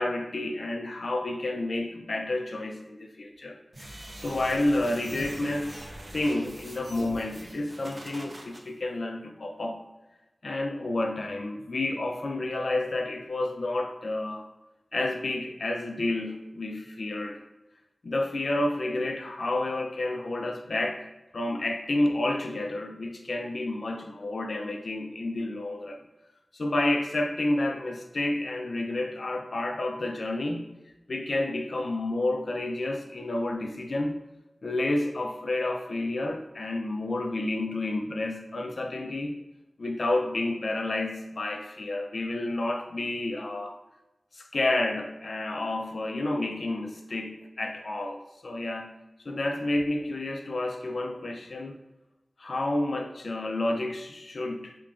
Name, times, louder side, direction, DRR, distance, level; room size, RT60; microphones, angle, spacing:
voice 1, 0.0-3.6 4.2-5.8 6.1-9.8 10.4-14.5 14.9-17.4 18.0-21.0 21.3-26.0 26.5-30.6 31.1-34.2 34.6-39.4 39.8-43.8 44.3-48.9 49.2-51.8 52.4-54.8, left 2 dB, 80° left, 3 dB, 0.4 m, -30 dB
sound 1, 3.7-8.6, right 1 dB, 50° right, 0.5 m, -43 dB
2.9 x 2.4 x 3.5 m, 0.99 s
wide cardioid pair, 60°, 0 cm